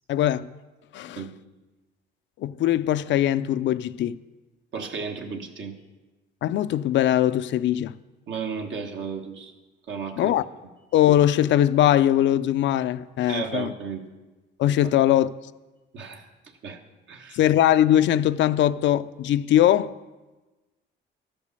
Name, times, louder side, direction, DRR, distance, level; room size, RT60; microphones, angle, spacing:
voice 1, 0.1-0.5 0.9-1.3 2.4-4.2 6.4-8.0 10.2-10.4 10.9-13.7 14.6-15.3 17.3-19.9, left 12 dB, 70° left, 0.4 m, -21 dB
voice 2, 4.7-5.7 8.3-9.5 9.9-10.3 13.3-14.0 14.8-15.0 15.9-16.3 16.6-16.8 17.1-17.4, right 6 dB, 70° right, 1.3 m, -33 dB
13.0 x 5.2 x 6.8 m
cardioid pair, 90°, 20 cm